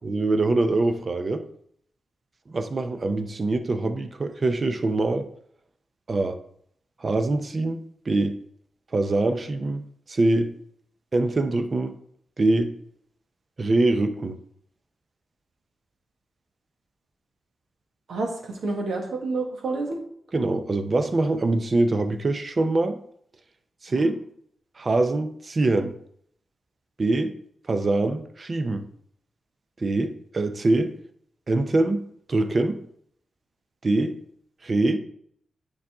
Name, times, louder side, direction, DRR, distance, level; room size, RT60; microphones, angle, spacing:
voice 1, 0.0-1.5 2.5-5.3 6.1-6.4 7.0-8.4 8.9-10.5 11.1-12.0 12.4-12.7 13.6-14.4 20.3-23.0 23.8-24.2 24.8-25.9 27.0-27.4 27.7-28.8 29.8-31.0 31.5-32.8 33.8-34.2 34.6-35.0, right 2 dB, 45° right, 0.7 m, -24 dB
voice 2, 18.1-20.0 23.9-24.1, right 3 dB, 75° right, 1.6 m, -29 dB
9.3 x 4.1 x 3.6 m
cardioid pair, 75°, 0 cm